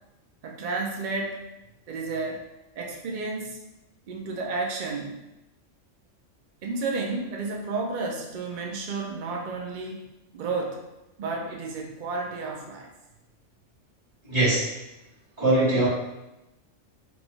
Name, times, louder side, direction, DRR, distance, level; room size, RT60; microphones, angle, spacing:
voice 1, 0.4-1.4 1.9-2.4 2.8-3.6 4.1-5.1 6.6-10.1 10.3-10.8 11.2-12.9, right 3 dB, 60° right, 0 dB, 0.5 m, -31 dB
voice 2, 14.2-14.7 15.4-15.9, right 2 dB, 25° right, -11 dB, 1.6 m, -21 dB
3.0 x 2.3 x 4.0 m, 0.95 s
omnidirectional pair, 1.3 m